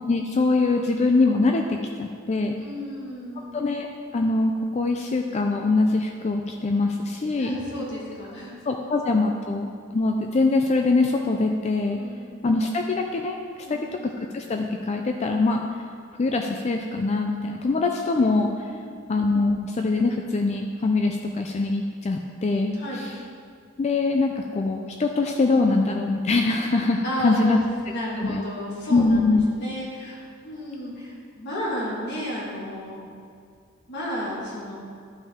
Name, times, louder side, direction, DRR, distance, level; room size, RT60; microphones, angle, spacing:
voice 1, 0.1-2.6 3.5-3.9 4.1-7.6 8.7-12.0 12.4-13.4 13.7-15.6 16.2-18.7 19.1-23.1 23.8-27.6 28.2-28.4 28.9-29.4, left 3 dB, 35° left, 3 dB, 0.4 m, -23 dB
voice 2, 2.6-3.5 7.4-8.9 11.9-12.3 13.6-13.9 18.6-19.0 22.7-23.1 27.0-27.6 27.8-33.0 33.9-34.8, equal, 60° left, -6 dB, 2.0 m, -32 dB
11.5 x 5.3 x 3.6 m, 2.1 s
head